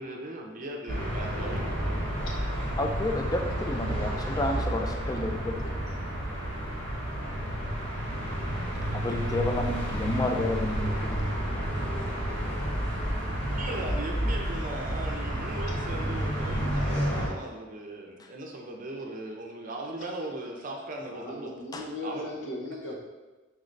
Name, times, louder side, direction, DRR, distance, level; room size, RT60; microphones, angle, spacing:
voice 1, 0.0-2.1 13.6-21.5 22.0-22.3, right 1 dB, 45° right, 1 dB, 0.6 m, -38 dB
sound 1, 0.9-17.3, right 1 dB, 60° left, 1.1 m, -30 dB
voice 2, 2.8-5.8 8.9-11.2 21.7-21.8, left 2 dB, 20° left, 3 dB, 0.3 m, -31 dB
voice 3, 21.1-22.9, left 2 dB, 80° left, -2 dB, 0.8 m, -38 dB
4.7 x 3.2 x 2.6 m, 1.2 s
head